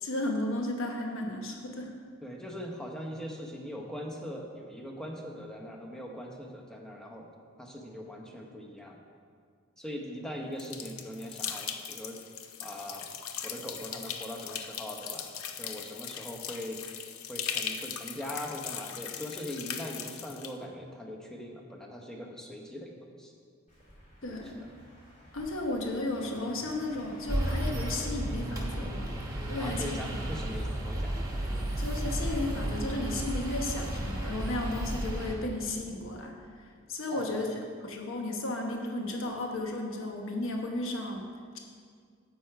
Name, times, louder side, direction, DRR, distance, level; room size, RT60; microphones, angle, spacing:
voice 1, 0.0-1.9 24.2-24.6 25.3-29.1 29.5-30.0 30.4-30.6 31.8-41.3, left 2 dB, 70° left, 1 dB, 1.1 m, -34 dB
voice 2, 2.2-7.3 7.6-9.0 9.8-12.2 12.6-13.1 13.4-15.3 15.6-17.0 17.3-23.3 24.6-24.7 29.6-31.3 37.1-37.6, equal, 5° left, 0 dB, 0.9 m, -41 dB
sound 1, 10.6-20.5, left 8 dB, 90° left, 0.6 m, -39 dB
Car passing by, 23.7-31.2, equal, 35° left, 2.5 m, -53 dB
sound 2, 27.3-35.4, right 1 dB, 15° right, 1.2 m, -33 dB
9.5 x 7.5 x 4.7 m, 2.1 s
head